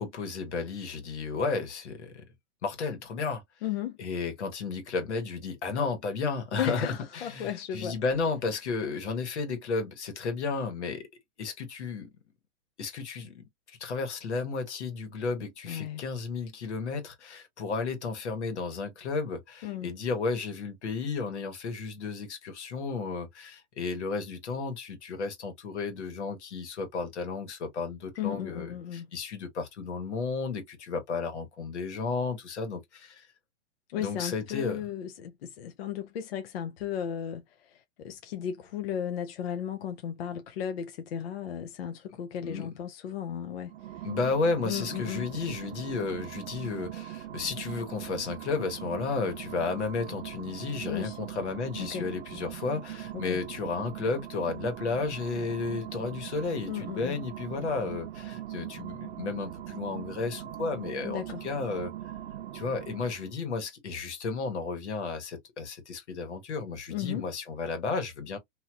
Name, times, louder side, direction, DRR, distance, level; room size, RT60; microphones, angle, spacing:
voice 1, 0.0-2.2 2.6-3.4 4.0-11.1 11.4-12.1 12.8-33.3 34.0-34.8 42.4-42.7 44.0-61.9 62.5-68.4, left 4 dB, 90° left, 1.5 m, -33 dB
voice 2, 3.6-4.0 6.5-8.0 15.7-16.0 19.6-19.9 28.2-29.1 33.9-44.1 44.6-45.3 50.9-51.2 51.8-52.1 53.1-53.4 56.7-57.2 61.0-61.4 66.9-67.3, left 9 dB, 60° left, 0.6 m, -35 dB
sound 1, 43.6-63.4, right 12 dB, 70° right, 0.5 m, -41 dB
2.9 x 2.7 x 2.3 m
hypercardioid pair, 165°, 34 cm